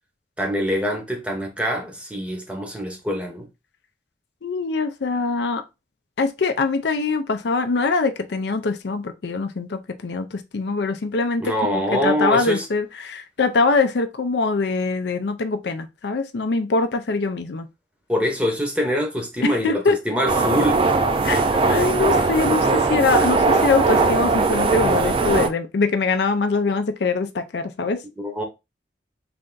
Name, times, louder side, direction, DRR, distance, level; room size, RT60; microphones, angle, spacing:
voice 1, 0.4-3.5 11.4-12.7 18.1-20.9 28.2-28.4, equal, 5° right, 0.8 m, -24 dB
voice 2, 4.4-5.6 6.2-17.7 19.4-20.0 21.2-28.0, left 4 dB, 65° left, 0.5 m, -23 dB
sound 1, 20.3-25.5, right 3 dB, 30° right, 0.4 m, -19 dB
3.3 x 2.6 x 3.8 m
head